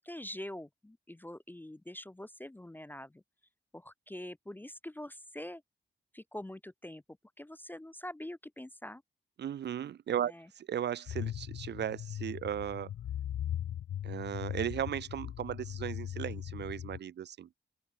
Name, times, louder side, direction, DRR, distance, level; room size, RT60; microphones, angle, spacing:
voice 1, 0.0-3.2 3.7-5.6 6.1-7.0 7.4-9.0 10.2-10.5, left 1 dB, 10° left, 0.3 m, -44 dB
voice 2, 9.4-12.9 14.0-17.5, right 10 dB, 60° right, 0.4 m, -36 dB
sound 1, 11.1-17.0, left 11 dB, 85° left, 0.4 m, -39 dB
open air
wide cardioid pair, 160°, 20 cm